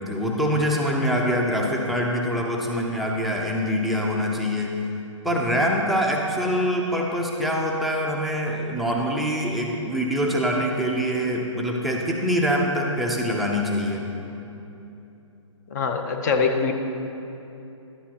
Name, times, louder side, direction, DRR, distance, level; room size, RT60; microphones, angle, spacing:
voice 1, 0.0-4.8 5.2-14.0, equal, ahead, -2 dB, 0.5 m, -24 dB
voice 2, 15.7-16.7, left 5 dB, 35° left, 5 dB, 0.7 m, -23 dB
11.0 x 8.3 x 2.8 m, 2.9 s
hypercardioid pair, 150°, 16 cm